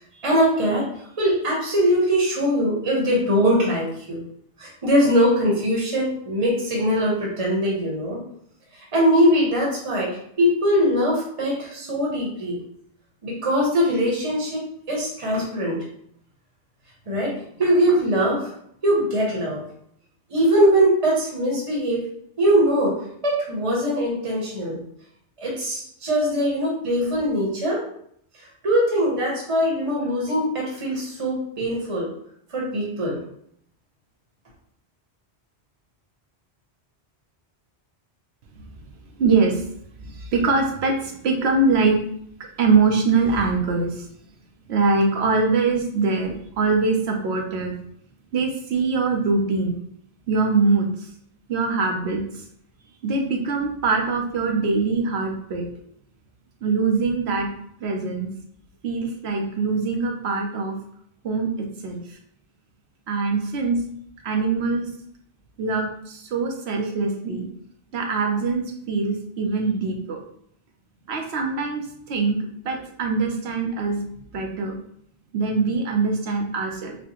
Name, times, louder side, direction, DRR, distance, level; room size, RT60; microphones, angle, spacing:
voice 1, 0.2-0.8 1.2-4.2 4.6-8.2 8.9-12.6 13.2-15.8 17.1-17.3 17.6-18.5 18.8-19.6 20.3-22.1 22.4-24.8 25.4-27.8 28.6-32.1 32.5-33.2, equal, 30° right, -3 dB, 1.0 m, -21 dB
voice 2, 39.2-39.6 40.0-42.0 42.6-44.1 44.7-47.7 48.3-49.8 50.3-51.1 51.5-52.4 53.0-55.7 56.6-57.5 57.8-58.3 58.8-60.8 61.2-62.2 63.1-63.8 64.2-64.9 65.6-67.5 67.9-70.2 71.1-74.0 74.3-74.7 75.3-77.0, right 4 dB, 75° right, 2 dB, 0.9 m, -23 dB
4.2 x 2.1 x 2.9 m, 0.67 s
omnidirectional pair, 1.1 m